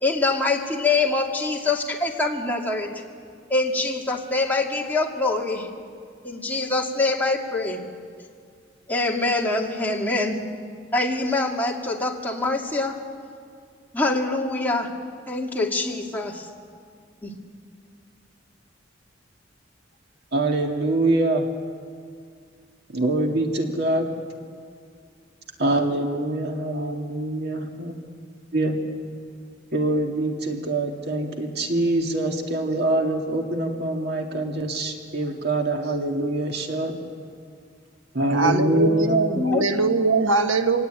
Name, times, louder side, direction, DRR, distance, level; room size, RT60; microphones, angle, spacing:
voice 1, 0.0-2.9 3.5-5.7 6.2-7.8 8.9-10.4 10.9-13.0 13.9-14.9 15.3-16.5 17.2-17.3 39.3-39.6, left 3 dB, 10° left, -1 dB, 2.3 m, -24 dB
voice 2, 20.3-21.4 22.9-24.1 25.6-27.9 28.5-28.8 29.7-36.9 38.1-39.2, right 2 dB, 55° right, 2 dB, 2.2 m, -24 dB
voice 3, 38.3-40.9, right 3 dB, 85° right, 7 dB, 1.4 m, -22 dB
24.0 x 18.5 x 9.0 m, 2.2 s
head